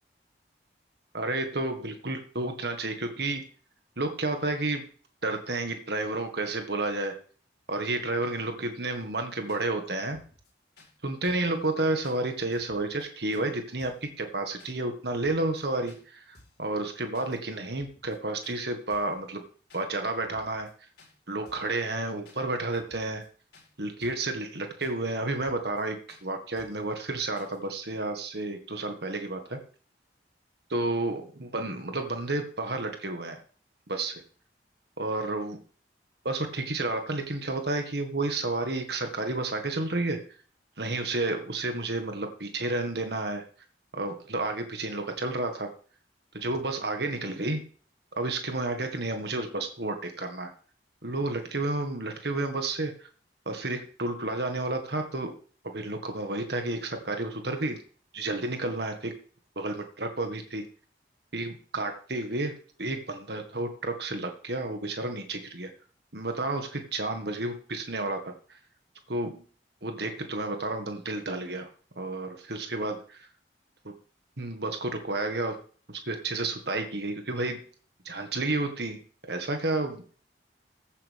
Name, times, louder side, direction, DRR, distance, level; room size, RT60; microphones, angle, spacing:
voice 1, 1.1-3.5 4.0-4.9 5.2-7.2 7.7-10.2 11.0-19.4 19.7-20.7 21.3-23.3 23.8-29.6 30.7-33.4 33.9-34.2 35.0-35.6 36.3-40.2 40.8-43.4 43.9-45.7 46.3-47.6 48.2-50.5 51.0-53.1 53.5-55.4 55.6-57.8 58.1-59.1 59.6-60.6 61.3-65.7 66.1-68.6 69.1-69.5 69.8-71.7 72.0-73.3 74.4-75.6 75.9-77.7 78.1-80.2, right 2 dB, 65° right, 5 dB, 1.8 m, -31 dB
sound 1, 8.9-9.0 9.5-9.6 10.0-10.5 10.8-10.9 11.2-11.5 12.0-12.2 12.5-13.0 13.3-13.5 13.8-14.1 14.6-14.7 15.1-15.6 15.9-16.0 16.3-16.7 17.1-17.4 17.6-18.2 18.4-18.6 18.9-19.2 19.7-19.8 20.2-20.7 21.0-21.1 21.4-21.8 22.2-22.4 22.7-23.3 23.5-23.7 24.0-24.3 24.8-24.9 25.3-25.8 26.1-26.2 26.6-26.9 27.4-27.6, left 2 dB, 70° left, 4.4 m, -57 dB
15.0 x 8.3 x 3.6 m, 0.42 s
head